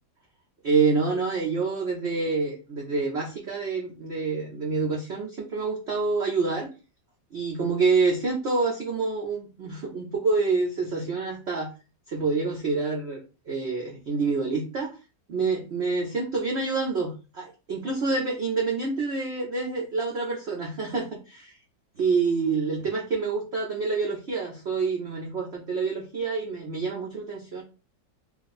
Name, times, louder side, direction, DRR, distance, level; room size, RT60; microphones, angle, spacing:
voice 1, 0.6-6.7 7.3-11.7 12.1-14.9 15.3-21.6 22.0-27.6, right 4 dB, 60° right, -1 dB, 0.7 m, -27 dB
2.9 x 2.5 x 4.1 m, 0.32 s
omnidirectional pair, 2.0 m